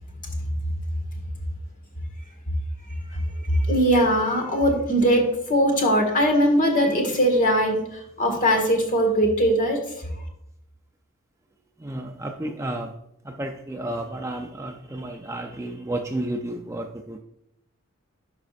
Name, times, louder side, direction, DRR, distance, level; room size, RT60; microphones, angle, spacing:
voice 1, 3.1-9.8, equal, 35° left, 2 dB, 1.7 m, -21 dB
voice 2, 11.8-12.9 13.3-17.2, right 1 dB, 15° right, 3 dB, 0.4 m, -32 dB
12.0 x 5.1 x 2.4 m, 0.79 s
head